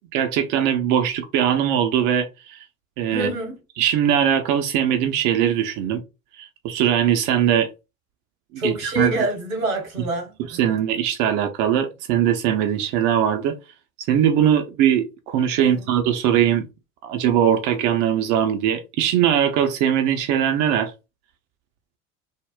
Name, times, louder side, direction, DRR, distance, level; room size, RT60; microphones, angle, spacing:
voice 1, 0.1-2.6 3.0-3.3 3.8-6.0 6.3-7.7 8.5-9.3 10.5-13.6 14.0-16.7 17.0-20.9, right 9 dB, 45° right, 0.5 m, -21 dB
voice 2, 3.1-3.6 8.6-10.8 15.6-15.9, right 1 dB, 75° right, 1.3 m, -27 dB
3.5 x 2.0 x 2.3 m
figure-of-eight pair, 65°, 42 cm